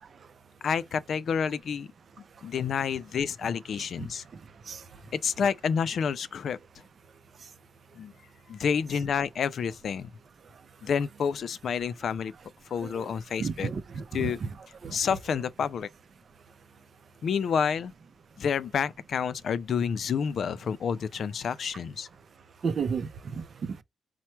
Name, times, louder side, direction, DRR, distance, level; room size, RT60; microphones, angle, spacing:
voice 1, 0.6-1.9 2.4-4.2 5.1-6.6 8.0-8.1 8.5-10.1 10.8-12.3 12.7-13.7 14.1-14.4 14.9-15.9 17.2-17.9 18.4-22.1, left 7 dB, 70° left, 0.4 m, -29 dB
voice 2, 13.4-14.5 14.8-14.9 22.6-23.7, right 5 dB, 55° right, 0.5 m, -32 dB
4.4 x 2.1 x 4.3 m
cardioid pair, 85°, 0 cm